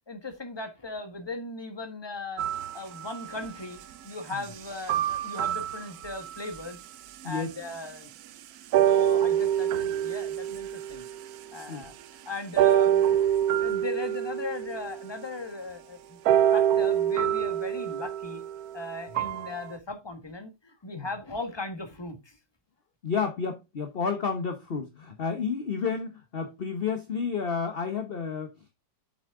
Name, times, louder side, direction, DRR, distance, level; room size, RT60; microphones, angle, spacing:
voice 1, 0.1-6.8 7.2-8.1 8.8-11.1 11.5-11.9 12.2-13.2 13.6-16.2 16.5-18.4 18.7-22.4, left 2 dB, 15° left, 1.5 m, -38 dB
sound 1, 2.4-3.5 4.9-6.6 7.2-7.3 8.7-11.6 12.6-15.2 16.3-19.7, right 11 dB, 70° right, 0.9 m, -26 dB
voice 2, 7.2-7.5 11.7-11.9 19.1-19.2 20.9-21.1 23.0-28.7, left 5 dB, 40° left, 1.0 m, -31 dB
7.3 x 6.3 x 3.7 m
omnidirectional pair, 2.0 m